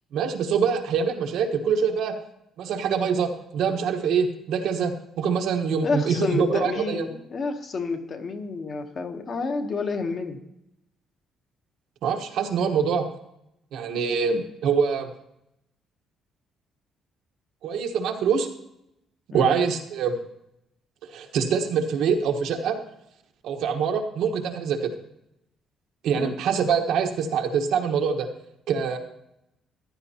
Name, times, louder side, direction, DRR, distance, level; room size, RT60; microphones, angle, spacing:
voice 1, 0.1-2.1 2.6-7.1 12.0-13.1 13.7-15.1 17.6-18.5 19.3-20.2 21.1-22.8 23.4-24.9 26.0-28.3 28.7-29.0, right 6 dB, 70° right, 4 dB, 1.3 m, -24 dB
voice 2, 5.8-10.4 19.3-19.5 26.1-26.3, left 4 dB, 35° left, 6 dB, 1.0 m, -29 dB
14.5 x 11.0 x 2.9 m, 0.83 s
cardioid pair, 175°, 0 cm